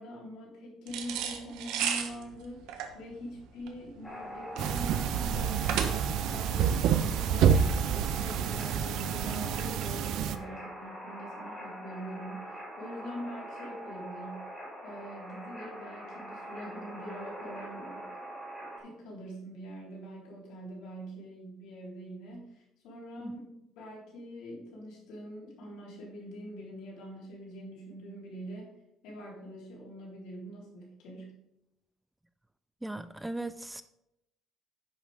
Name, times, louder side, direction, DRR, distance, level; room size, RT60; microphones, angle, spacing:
voice 1, 0.0-2.7 2.9-14.5 14.8-18.1 18.8-23.4 23.8-28.7 29.0-31.4, equal, 75° left, -3 dB, 3.7 m, -44 dB
sound 1, 0.9-6.3, right 8 dB, 90° right, 1.2 m, -35 dB
sound 2, 4.0-18.8, equal, 10° left, 3.4 m, -43 dB
sound 3, 4.6-10.4, right 8 dB, 65° right, 0.6 m, -28 dB
voice 2, 32.8-33.8, right 2 dB, 5° right, 12 dB, 0.3 m, -38 dB
10.0 x 6.6 x 3.6 m, 0.84 s
cardioid pair, 160°, 0 cm